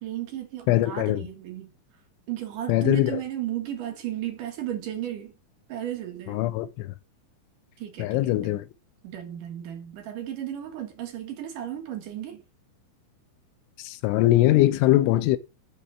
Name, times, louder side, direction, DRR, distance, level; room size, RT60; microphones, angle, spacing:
voice 1, 0.0-1.7 2.3-5.3 5.7-6.4 7.8-8.5 9.0-12.4, right 12 dB, 65° right, 2.2 m, -34 dB
voice 2, 0.7-1.2 2.7-3.2 6.3-6.9 8.0-8.7 13.8-15.4, left 15 dB, 80° left, 2.9 m, -22 dB
7.0 x 6.2 x 7.2 m
omnidirectional pair, 5.8 m